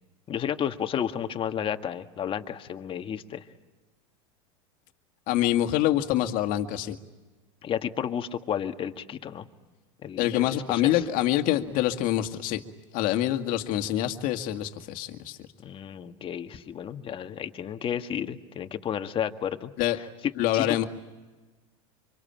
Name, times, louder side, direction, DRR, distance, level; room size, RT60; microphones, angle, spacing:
voice 1, 0.3-3.4 7.6-9.5 10.0-11.0 15.6-20.8, left 9 dB, 30° left, 7 dB, 1.7 m, -32 dB
voice 2, 5.3-7.0 10.2-12.6 12.9-15.4 19.8-20.0 20.4-20.8, left 13 dB, 55° left, 7 dB, 2.0 m, -25 dB
26.0 x 25.5 x 9.0 m, 1.2 s
hypercardioid pair, 105°, 17 cm